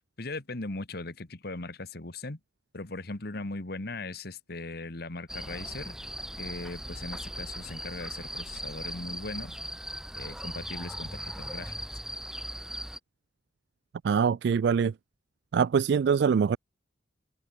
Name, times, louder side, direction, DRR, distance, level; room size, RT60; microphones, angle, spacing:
voice 1, 0.2-2.4 2.7-6.0 6.4-9.6 10.2-11.8, left 2 dB, 60° left, 1.6 m, -39 dB
sound 1, 5.3-13.0, right 1 dB, 5° right, 0.9 m, -39 dB
voice 2, 14.0-14.9 15.5-16.6, right 6 dB, 65° right, 0.3 m, -23 dB
head